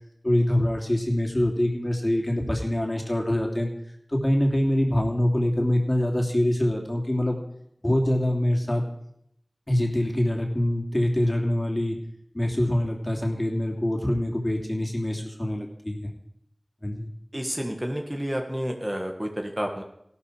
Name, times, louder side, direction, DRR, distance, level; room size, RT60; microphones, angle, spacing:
voice 1, 0.2-3.7 4.1-7.4 7.8-8.8 9.7-12.0 12.3-16.1 16.8-17.1, left 1 dB, 30° left, 0 dB, 3.0 m, -24 dB
voice 2, 17.3-19.8, equal, 20° right, 2 dB, 1.7 m, -30 dB
16.0 x 12.5 x 5.0 m, 0.74 s
wide cardioid pair, 50°, 0 cm